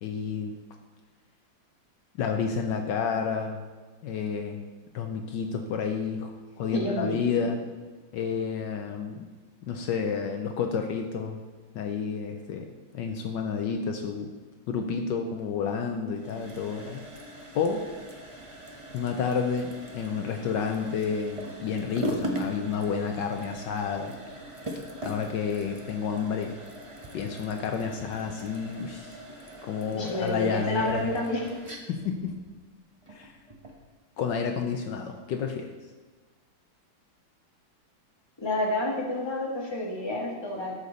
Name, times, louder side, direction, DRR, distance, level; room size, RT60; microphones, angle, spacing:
voice 1, 0.0-0.5 2.2-3.6 4.0-4.6 4.9-7.6 8.1-9.3 9.6-11.4 11.7-12.7 12.9-14.3 14.7-17.0 17.5-17.8 18.9-24.1 25.0-26.6 27.1-29.2 29.6-31.1 31.9-32.3 33.1-33.3 34.2-35.7, left 6 dB, 75° left, 4 dB, 1.3 m, -30 dB
voice 2, 6.7-7.4 29.9-31.4 38.4-40.7, left 1 dB, 15° left, -3 dB, 1.6 m, -29 dB
sound 1, 16.1-33.8, equal, 25° right, 0.7 m, -40 dB
13.5 x 6.7 x 4.1 m, 1.3 s
omnidirectional pair, 2.1 m